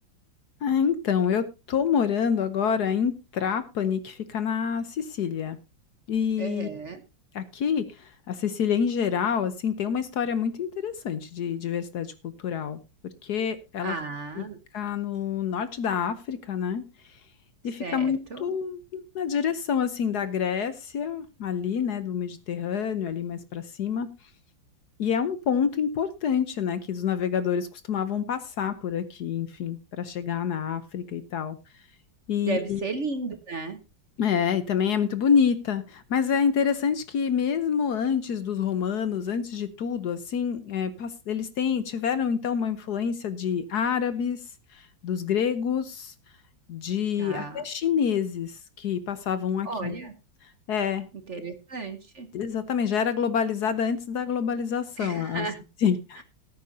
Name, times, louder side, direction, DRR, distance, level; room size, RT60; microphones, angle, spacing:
voice 1, 0.6-5.6 6.1-6.7 7.3-12.8 13.2-14.0 14.4-14.5 14.7-16.8 17.6-24.1 25.0-31.6 32.3-32.8 34.2-44.4 44.7-46.1 46.7-49.9 50.7-51.1 52.3-55.5 55.8-56.2, left 7 dB, 65° left, 12 dB, 1.2 m, -27 dB
voice 2, 6.4-7.0 13.8-14.6 17.8-18.5 32.4-33.8 47.2-47.6 49.6-50.1 51.3-52.3 55.0-55.6, right 4 dB, 45° right, 8 dB, 1.2 m, -34 dB
18.5 x 9.4 x 2.7 m, 0.26 s
omnidirectional pair, 2.1 m